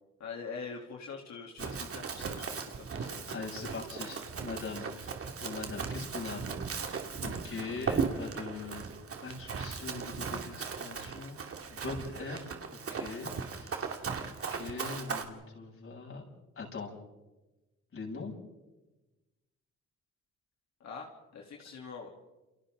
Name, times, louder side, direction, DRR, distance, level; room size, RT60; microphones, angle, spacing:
voice 1, 0.2-3.3 20.8-22.1, left 5 dB, 60° left, -1 dB, 3.4 m, -44 dB
Run, 1.6-15.2, right 5 dB, 50° right, 2.6 m, -37 dB
voice 2, 3.3-6.5 6.8-8.8 9.2-11.4 11.7-16.2 16.6-16.9 17.9-18.3, left 4 dB, 45° left, 0 dB, 7.4 m, -42 dB
29.5 x 29.0 x 3.9 m, 1.1 s
cardioid pair, 90°, 30 cm